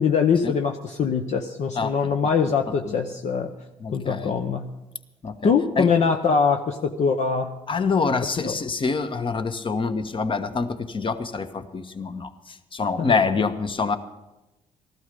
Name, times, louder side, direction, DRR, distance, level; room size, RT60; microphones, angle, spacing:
voice 1, 0.0-3.5 3.9-4.7 5.4-7.5 8.4-8.5 13.0-13.2, left 5 dB, 55° left, 4 dB, 0.9 m, -23 dB
voice 2, 3.8-4.3 5.2-5.5 5.8-5.9 7.7-12.3 12.7-14.0, left 4 dB, 35° left, 9 dB, 1.2 m, -26 dB
14.5 x 12.5 x 5.3 m, 1.0 s
supercardioid pair, 60°, 15 cm